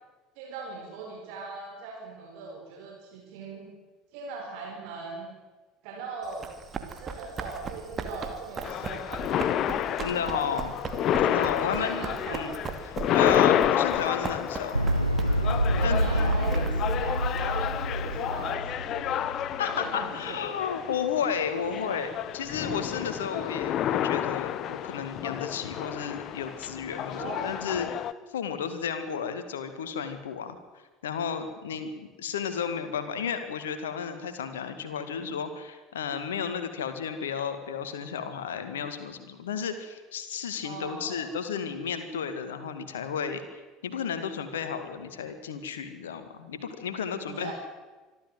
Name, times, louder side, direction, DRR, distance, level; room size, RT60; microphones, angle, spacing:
voice 1, 0.4-3.7 4.1-5.3 5.8-6.5 6.9-10.0 11.6-12.6 15.7-17.7 18.0-19.3 19.6-20.4 21.6-22.0 27.1-27.5 40.6-41.3 47.3-47.5, right 4 dB, 55° right, -1 dB, 4.7 m, -40 dB
Run, 6.2-18.5, right 5 dB, 30° right, 2.5 m, -39 dB
sound 1, 8.6-28.1, left 10 dB, 45° left, 0.9 m, -30 dB
voice 2, 10.0-10.8 11.2-12.5 13.1-14.8 15.8-16.7 19.6-27.9 28.3-30.6 31.0-43.4 43.8-47.5, left 7 dB, 70° left, 9 dB, 2.0 m, -33 dB
sound 2, 14.7-19.9, right 1 dB, 90° right, 0.7 m, -27 dB
25.0 x 13.0 x 7.8 m, 1.2 s
figure-of-eight pair, 65°, 0 cm